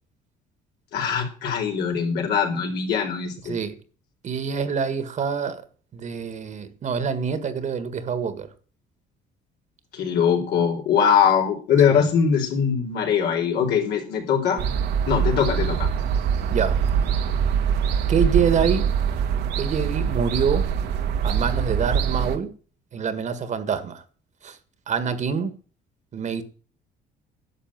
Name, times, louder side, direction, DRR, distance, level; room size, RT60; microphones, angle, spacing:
voice 1, 0.9-3.5 9.9-14.6 15.1-15.9, left 7 dB, 75° left, 4.4 m, -22 dB
voice 2, 3.4-3.7 4.2-5.6 5.9-8.5 11.9-12.0 16.5-16.8 18.1-18.9 19.6-20.7 21.2-22.5 22.9-24.0 24.4-24.6 24.9-25.6 26.1-26.4, right 6 dB, 45° right, 1.6 m, -26 dB
sound 1, 14.6-22.4, right 7 dB, 85° right, 1.6 m, -23 dB
11.0 x 6.9 x 8.9 m
cardioid pair, 110°, 17 cm